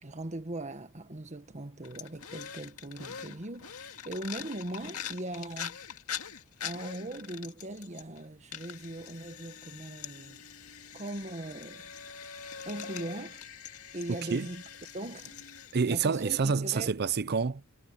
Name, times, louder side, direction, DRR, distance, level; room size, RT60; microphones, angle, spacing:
voice 1, 0.0-5.8 6.6-10.4 10.9-11.9 12.6-13.4 13.9-14.6 14.9-15.4 15.9-17.0, right 1 dB, 30° right, 1.5 m, -40 dB
sound 1, 1.8-8.2 8.5-16.1, left 8 dB, 70° left, 2.2 m, -43 dB
voice 2, 15.7-17.7, right 5 dB, 45° right, 0.6 m, -28 dB
head